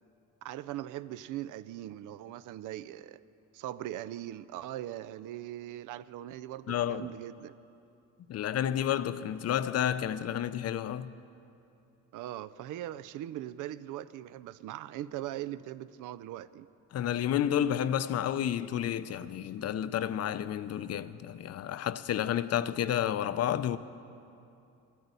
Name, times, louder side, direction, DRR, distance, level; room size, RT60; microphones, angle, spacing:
voice 1, 0.4-3.2 3.5-7.6 12.1-16.7, right 13 dB, 85° right, 0.5 m, -40 dB
voice 2, 6.7-7.1 8.3-11.1 16.9-23.8, left 10 dB, 55° left, 0.5 m, -30 dB
12.5 x 9.2 x 8.1 m
cardioid pair, 90°, 30 cm